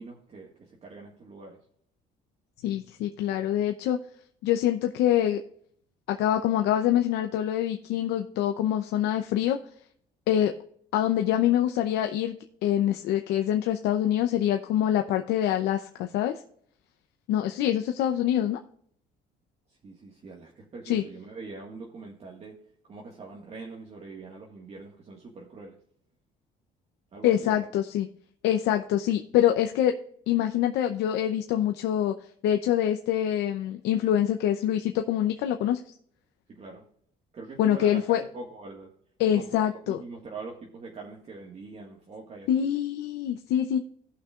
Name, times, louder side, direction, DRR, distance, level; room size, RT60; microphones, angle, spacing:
voice 1, 0.0-1.6 19.7-22.5 22.8-25.8 27.1-27.7 36.5-36.8 37.3-38.0 38.3-38.9 39.3-42.7, right 3 dB, 40° right, -1 dB, 1.7 m, -43 dB
voice 2, 2.6-4.0 4.4-5.4 6.1-9.6 10.3-10.5 10.9-12.3 12.6-16.3 17.3-18.6 20.9-21.0 27.2-28.1 28.4-29.9 30.3-32.1 32.4-35.8 37.6-38.2 39.2-40.0 42.5-43.8, left 11 dB, 85° left, 5 dB, 0.7 m, -25 dB
17.0 x 5.9 x 2.5 m, 0.64 s
cardioid pair, 110°, 17 cm